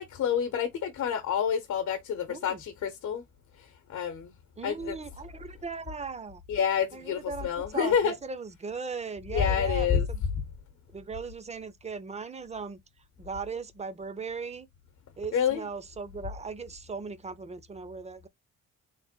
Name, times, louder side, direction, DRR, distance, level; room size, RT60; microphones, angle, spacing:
voice 1, 0.0-3.2 3.9-4.3 4.6-4.9 6.5-8.1 9.3-10.1 15.3-15.7, left 8 dB, 65° left, 0.8 m, -28 dB
voice 2, 2.3-2.6 4.6-6.4 6.9-10.2 10.9-12.8 13.2-14.7 15.2-18.3, right 5 dB, 20° right, 0.5 m, -38 dB
3.3 x 2.1 x 4.3 m
cardioid pair, 90°, 30 cm